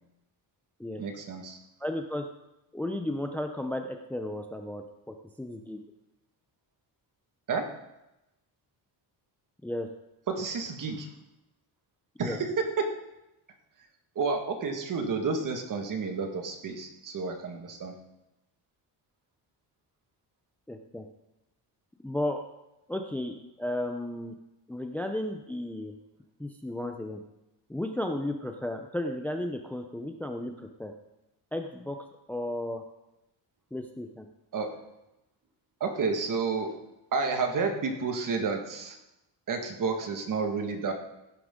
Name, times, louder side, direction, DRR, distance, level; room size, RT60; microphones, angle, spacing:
voice 1, 1.0-1.6 7.5-7.7 10.3-11.1 12.2-12.5 12.8-12.9 14.2-18.0 34.5-34.7 35.8-36.7 37.1-39.0 39.5-40.9, right 4 dB, 45° right, 4 dB, 1.8 m, -30 dB
voice 2, 1.8-2.3 2.7-5.8 9.6-9.9 12.2-12.4 20.7-21.1 22.0-22.4 22.9-24.3 24.7-25.9 26.4-27.2 27.7-30.9 31.5-32.0 32.3-32.8 33.7-34.3, left 1 dB, 5° left, 5 dB, 0.6 m, -34 dB
16.5 x 9.8 x 3.8 m, 0.92 s
cardioid pair, 150°, 43 cm